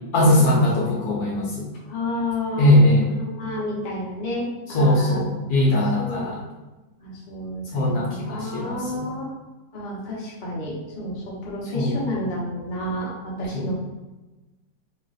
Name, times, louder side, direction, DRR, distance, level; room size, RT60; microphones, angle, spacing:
voice 1, 0.1-1.7 2.6-3.1 4.7-6.4 7.7-9.0 11.7-12.0 13.5-13.7, left 1 dB, 70° left, -4 dB, 1.2 m, -20 dB
voice 2, 1.8-5.2 6.0-6.4 7.0-9.2 9.7-13.7, left 1 dB, 35° left, -6 dB, 0.9 m, -31 dB
3.3 x 2.4 x 3.9 m, 1.1 s
omnidirectional pair, 1.9 m